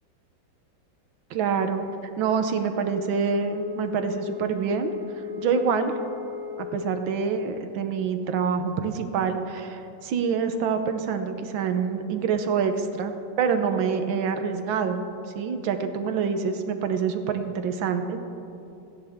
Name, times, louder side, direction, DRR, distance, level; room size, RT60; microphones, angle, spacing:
voice 1, 1.3-1.9 2.2-5.9 6.6-15.0 15.3-18.2, right 6 dB, 80° right, 7 dB, 1.6 m, -26 dB
Wind instrument woodwind instrument, 2.7-6.8, left 8 dB, 90° left, 5.2 m, -37 dB
28.5 x 10.0 x 3.6 m, 2.7 s
omnidirectional pair, 2.1 m